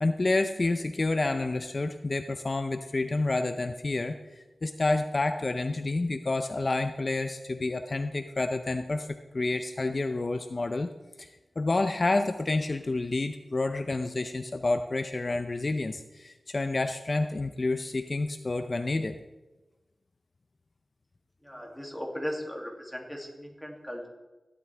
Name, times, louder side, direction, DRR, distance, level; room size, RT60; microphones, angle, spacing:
voice 1, 0.0-10.9 11.2-11.3 11.6-19.2, left 2 dB, 45° left, 7 dB, 0.6 m, -29 dB
voice 2, 21.4-24.1, equal, ahead, -1 dB, 2.5 m, -37 dB
16.0 x 11.0 x 3.4 m, 1.1 s
wide cardioid pair, 95°, 0 cm